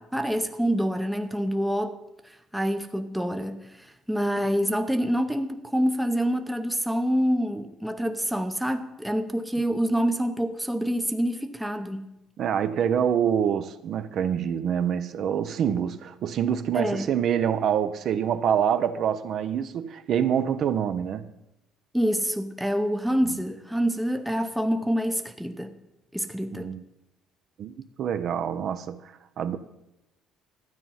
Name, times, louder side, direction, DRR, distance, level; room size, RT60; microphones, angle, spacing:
voice 1, 0.0-2.0 2.5-12.1 16.7-17.1 21.9-25.7 26.1-26.7, equal, ahead, 0.7 m, -26 dB
voice 2, 12.4-21.3 26.5-26.8 27.6-29.6, right 8 dB, 50° right, 0.6 m, -26 dB
12.5 x 9.0 x 5.6 m
cardioid pair, 155°, 0 cm